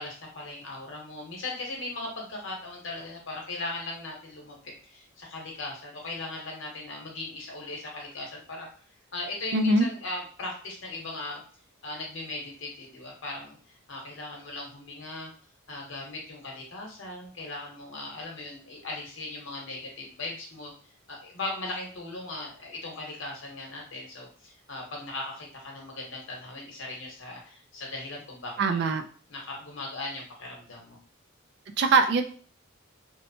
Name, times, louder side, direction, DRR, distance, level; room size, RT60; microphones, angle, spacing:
voice 1, 0.0-8.7 9.1-11.4 11.8-13.6 13.9-15.3 15.7-20.7 21.1-28.9 29.3-31.0, left 2 dB, 60° left, -1 dB, 0.9 m, -38 dB
voice 2, 9.5-9.9 28.6-29.0 31.8-32.2, right 3 dB, 55° right, 7 dB, 0.3 m, -22 dB
2.9 x 2.1 x 2.6 m, 0.42 s
head